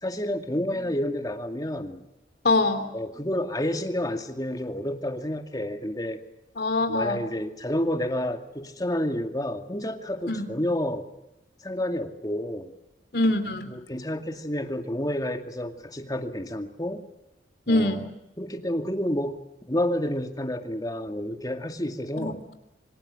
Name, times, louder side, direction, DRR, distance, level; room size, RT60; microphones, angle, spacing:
voice 1, 0.0-2.0 2.9-6.2 6.9-11.0 11.6-12.7 13.7-17.0 17.7-18.1 18.4-19.4 19.7-22.4, left 1 dB, 20° left, 6 dB, 2.3 m, -29 dB
voice 2, 2.4-2.9 6.6-7.3 10.3-10.4 13.1-13.7 17.7-18.0 22.2-22.3, left 2 dB, 60° left, 8 dB, 3.1 m, -24 dB
27.5 x 25.0 x 7.8 m, 0.93 s
head